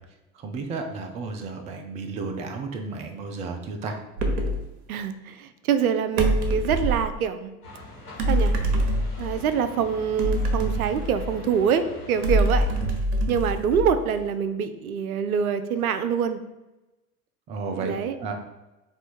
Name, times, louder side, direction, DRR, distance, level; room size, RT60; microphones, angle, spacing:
voice 1, 0.4-4.0 17.5-17.9 18.2-18.3, right 4 dB, 15° right, 5 dB, 0.3 m, -32 dB
sound 1, 4.2-4.6 6.2-7.1 8.2-9.4 10.2-11.5 12.2-14.1, right 1 dB, 50° right, 0.9 m, -24 dB
voice 2, 4.9-7.5 8.3-8.6 9.2-12.7 13.3-16.4 17.8-18.2, right 7 dB, 70° right, 11 dB, 0.5 m, -25 dB
sound 2, 7.6-12.8, left 2 dB, 80° left, 1.5 m, -43 dB
4.3 x 2.6 x 4.3 m, 1.0 s
figure-of-eight pair, 75°, 45 cm